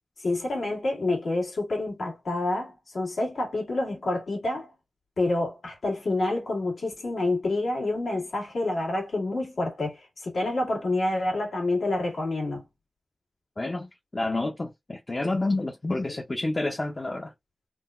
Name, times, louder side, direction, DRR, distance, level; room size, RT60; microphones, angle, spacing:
voice 1, 0.2-4.7 5.2-12.6 16.1-16.2, left 2 dB, 80° left, 1.7 m, -28 dB
voice 2, 13.6-17.3, left 2 dB, 30° left, 0.5 m, -29 dB
3.7 x 2.2 x 2.4 m
wide cardioid pair, 85°, 0 cm